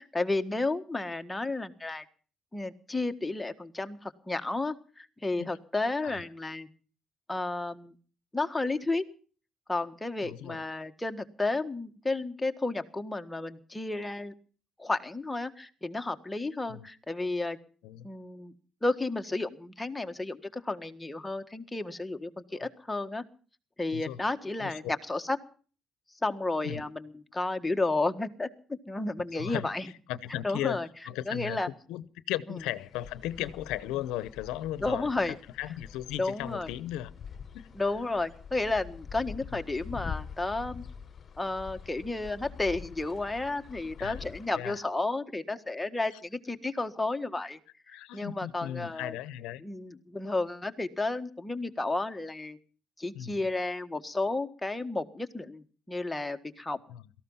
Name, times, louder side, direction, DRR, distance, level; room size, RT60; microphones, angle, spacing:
voice 1, 0.0-2.0 2.5-6.7 7.3-7.9 8.3-9.0 9.7-14.3 14.8-17.6 18.0-18.5 18.8-23.2 23.8-25.4 26.2-29.9 30.4-30.9 31.2-31.7 34.8-35.3 36.2-36.7 37.7-40.8 41.4-47.6 47.9-49.1 49.6-52.6 53.0-56.8, left 2 dB, 15° left, 1.6 m, -32 dB
voice 2, 10.2-10.6 16.7-16.9 17.8-18.1 22.5-22.7 23.9-24.2 24.6-24.8 26.6-26.9 29.3-29.7 30.1-30.8 31.1-31.6 31.9-37.1 37.5-37.7 44.0-44.2 44.5-44.8 47.9-49.6 53.1-53.5 56.9-57.0, left 13 dB, 85° left, 0.8 m, -36 dB
sound 1, 32.6-44.6, left 7 dB, 45° left, 1.1 m, -45 dB
17.5 x 14.5 x 5.5 m
supercardioid pair, 70°, 0 cm